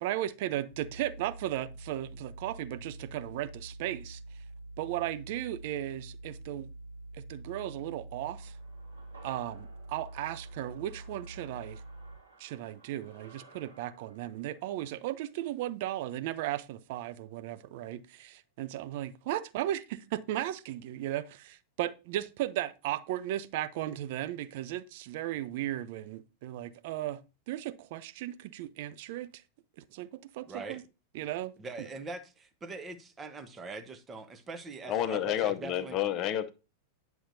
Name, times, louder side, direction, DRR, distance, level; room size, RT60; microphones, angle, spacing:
voice 1, 0.0-4.2 4.8-6.7 7.1-8.5 9.2-11.8 12.4-27.2 27.5-29.4 29.9-30.8 31.1-31.5 31.8-31.9, right 13 dB, 50° right, 0.5 m, -36 dB
sound 1, 0.7-12.1, right 2 dB, 70° left, 0.9 m, -46 dB
sound 2, 8.4-16.9 17.2-17.3, right 3 dB, 85° right, 3.5 m, -58 dB
voice 2, 30.5-30.8 31.6-36.0, right 3 dB, 20° right, 1.0 m, -42 dB
voice 3, 34.8-36.5, left 11 dB, 35° left, 0.7 m, -30 dB
10.0 x 6.2 x 2.7 m
figure-of-eight pair, 90°, 0 cm